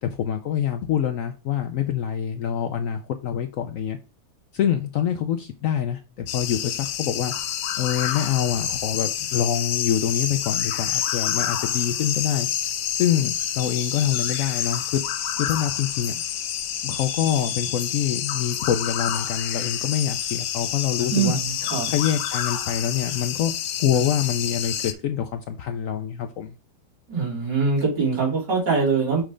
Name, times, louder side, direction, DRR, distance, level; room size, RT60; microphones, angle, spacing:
voice 1, 0.0-4.0 4.5-7.3 7.8-12.7 13.0-15.0 15.4-16.2 16.8-21.4 21.9-26.5, left 9 dB, 70° left, 7 dB, 0.8 m, -25 dB
sound 1, 6.3-24.9, left 10 dB, 90° left, 1.3 m, -28 dB
voice 2, 21.1-21.9 27.1-29.2, right 5 dB, 80° right, -4 dB, 3.5 m, -23 dB
6.2 x 3.2 x 5.0 m, 0.31 s
omnidirectional pair, 1.8 m